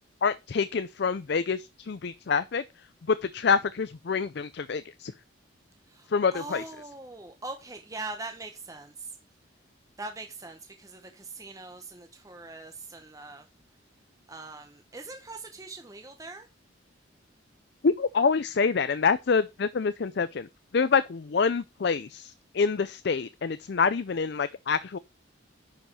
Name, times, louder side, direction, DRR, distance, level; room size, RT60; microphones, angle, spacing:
voice 1, 0.2-2.6 3.1-5.1 6.1-6.6 17.8-20.5 20.7-25.0, left 5 dB, 55° left, 0.4 m, -26 dB
voice 2, 5.9-9.1 10.0-13.4 14.3-16.5, right 3 dB, 15° right, 0.9 m, -42 dB
10.5 x 5.2 x 4.8 m
head